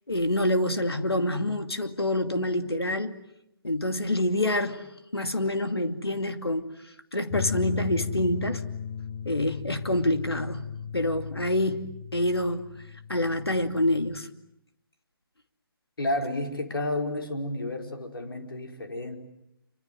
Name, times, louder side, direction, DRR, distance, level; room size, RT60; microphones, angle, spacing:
voice 1, 0.1-3.1 3.6-4.8 5.1-6.8 7.1-8.6 9.2-10.7 10.9-12.6 13.1-14.3, left 1 dB, 90° left, 7 dB, 2.5 m, -27 dB
sound 1, 7.3-14.2, left 7 dB, 35° left, 1.7 m, -36 dB
voice 2, 16.0-19.2, left 1 dB, 70° left, 4 dB, 4.9 m, -31 dB
28.0 x 25.0 x 7.8 m, 0.83 s
figure-of-eight pair, 145°, 13 cm